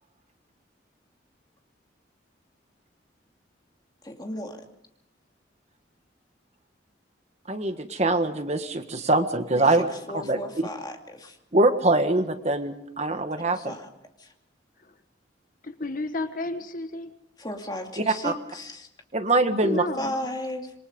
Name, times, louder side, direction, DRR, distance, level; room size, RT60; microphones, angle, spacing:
voice 1, 4.0-4.7 9.5-11.4 13.5-13.9 14.2-14.3 17.4-18.9 20.0-20.7, left 1 dB, 20° left, 3 dB, 2.5 m, -35 dB
voice 2, 7.5-9.9 10.2-10.7 11.5-13.7 18.0-18.3 19.1-19.8, right 2 dB, 35° right, 8 dB, 1.5 m, -23 dB
voice 3, 15.6-17.2 19.6-20.3, left 2 dB, 50° left, 9 dB, 1.3 m, -32 dB
27.0 x 22.5 x 5.4 m, 0.79 s
head